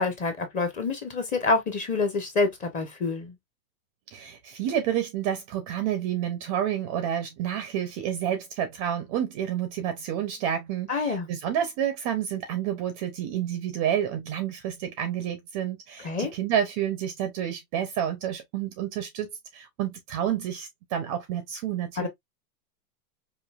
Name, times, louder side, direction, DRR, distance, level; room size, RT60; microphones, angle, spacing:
voice 1, 0.0-3.3 10.9-11.3 16.0-16.3 22.0-22.1, left 3 dB, 15° left, 0.6 m, -27 dB
voice 2, 4.1-22.1, right 10 dB, 25° right, 0.4 m, -29 dB
5.0 x 2.6 x 2.2 m
hypercardioid pair, 140°, 47 cm